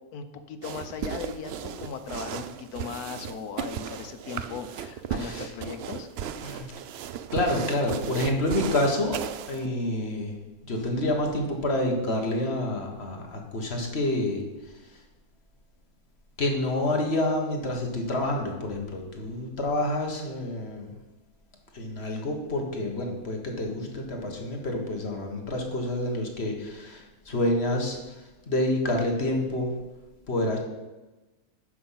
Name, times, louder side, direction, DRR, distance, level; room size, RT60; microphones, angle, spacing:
voice 1, 0.1-6.1, left 6 dB, 85° left, 9 dB, 1.4 m, -38 dB
sound 1, 0.6-9.7, right 9 dB, 70° right, 0.6 m, -36 dB
voice 2, 5.2-5.5 6.4-6.7 7.3-10.4 10.7-14.5 16.4-20.9 21.7-28.0 28.5-29.7 30.3-30.6, left 1 dB, 45° left, 1 dB, 1.7 m, -28 dB
9.5 x 6.3 x 5.7 m, 1.1 s
omnidirectional pair, 1.6 m